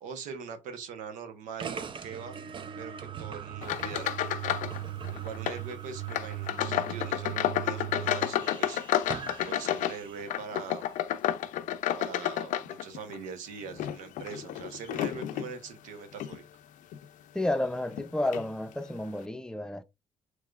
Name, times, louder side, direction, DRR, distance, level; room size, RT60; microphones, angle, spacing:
voice 1, 0.0-2.4 2.8-4.2 5.2-8.8 9.4-10.8 12.0-16.4, right 6 dB, 85° right, 1.0 m, -42 dB
sound 1, 1.6-10.3, right 10 dB, 40° right, 0.5 m, -39 dB
sound 2, 3.6-4.8 5.0-5.6 6.1-13.2 13.7-15.5 16.1-16.4 16.9-17.0 17.9-18.0 18.3-18.5, left 12 dB, 80° left, 0.5 m, -31 dB
voice 2, 17.3-19.8, left 1 dB, 5° left, 0.6 m, -31 dB
4.7 x 3.1 x 2.4 m
cardioid pair, 85°, 13 cm